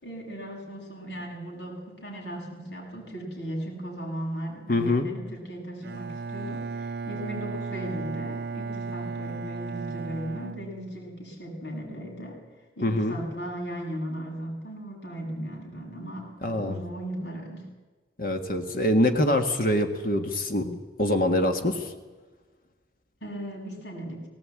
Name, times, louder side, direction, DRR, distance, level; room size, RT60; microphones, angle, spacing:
voice 1, 0.0-12.4 12.8-17.7 23.2-24.3, right 1 dB, 85° left, -1 dB, 7.1 m, -37 dB
voice 2, 4.7-5.1 12.8-13.2 16.4-16.8 18.2-21.9, left 1 dB, 50° left, 5 dB, 1.7 m, -24 dB
Bowed string instrument, 5.8-11.3, right 4 dB, 60° right, 0.6 m, -35 dB
18.5 x 18.0 x 8.8 m, 1.3 s
head